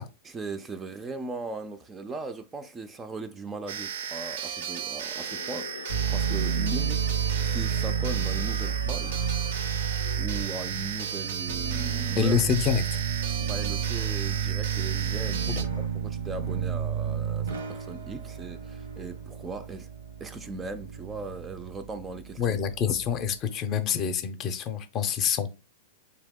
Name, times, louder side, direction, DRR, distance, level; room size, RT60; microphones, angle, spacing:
voice 1, 0.2-7.0 7.4-9.3 10.2-12.4 13.4-19.9 20.2-22.6, right 3 dB, 20° right, 0.4 m, -38 dB
sound 1, 3.7-15.6, right 7 dB, 70° right, 0.5 m, -35 dB
Crowd, 5.0-10.8, left 6 dB, 90° left, 0.4 m, -43 dB
sound 2, 5.9-23.3, right 7 dB, 90° right, 1.0 m, -31 dB
voice 2, 12.2-13.0 15.5-15.7 22.4-25.5, left 7 dB, 35° left, 0.6 m, -27 dB
3.4 x 2.8 x 3.6 m
hypercardioid pair, 125°, 0 cm